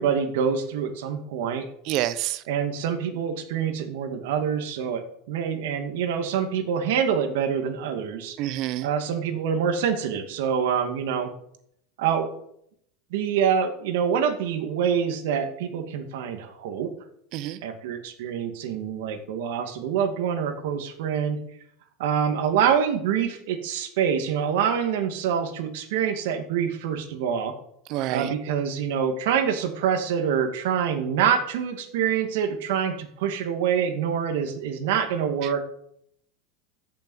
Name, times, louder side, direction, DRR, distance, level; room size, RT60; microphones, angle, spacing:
voice 1, 0.0-1.7 2.5-8.4 8.8-11.3 12.0-12.3 13.1-16.9 17.6-21.4 22.0-27.5 28.1-35.6, right 7 dB, 70° right, 2.3 m, -26 dB
voice 2, 1.9-2.4 8.4-8.9 17.3-17.6 27.9-28.3 35.4-35.5, right 14 dB, 45° right, 0.8 m, -28 dB
14.5 x 7.1 x 8.1 m
supercardioid pair, 165°, 0 cm